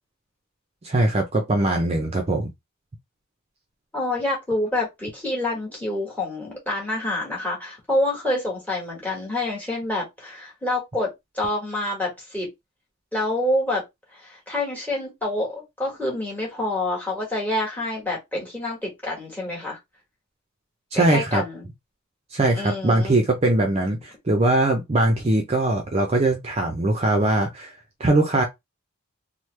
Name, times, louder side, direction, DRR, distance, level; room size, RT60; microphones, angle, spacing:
voice 1, 0.8-2.5 20.9-21.4 22.3-27.7 28.0-28.4, right 2 dB, 30° right, 0.5 m, -21 dB
voice 2, 3.9-11.1 11.3-12.5 13.1-13.8 14.1-19.8 20.9-21.6 22.5-23.1, left 1 dB, 5° left, 1.4 m, -27 dB
3.1 x 2.0 x 3.2 m
head